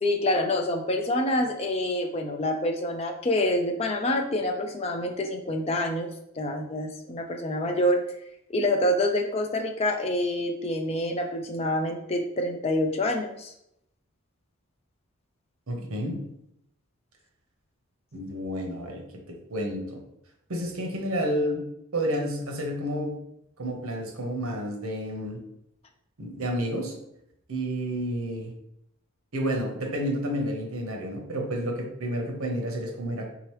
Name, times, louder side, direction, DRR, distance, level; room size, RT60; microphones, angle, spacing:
voice 1, 0.0-6.1 6.4-8.0 8.5-13.5, left 1 dB, 25° left, 3 dB, 0.4 m, -27 dB
voice 2, 15.7-16.2 18.1-19.0 19.5-20.0 20.5-21.6 21.9-23.2 23.6-25.4 26.2-26.9 27.5-28.5 29.3-33.3, equal, 80° right, 2 dB, 0.9 m, -30 dB
3.6 x 2.9 x 3.1 m, 0.77 s
head